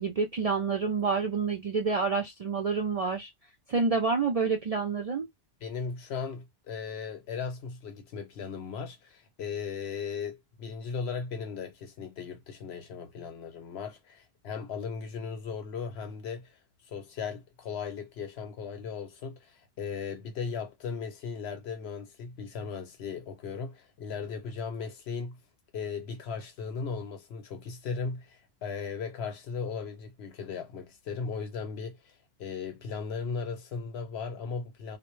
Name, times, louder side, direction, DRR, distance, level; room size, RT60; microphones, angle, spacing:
voice 1, 0.0-3.3 3.7-5.3, right 4 dB, 55° right, 0.4 m, -28 dB
voice 2, 5.6-16.6 16.9-25.4 25.7-32.1 32.4-35.0, left 5 dB, 75° left, 0.9 m, -37 dB
2.1 x 2.0 x 3.0 m
omnidirectional pair, 1.1 m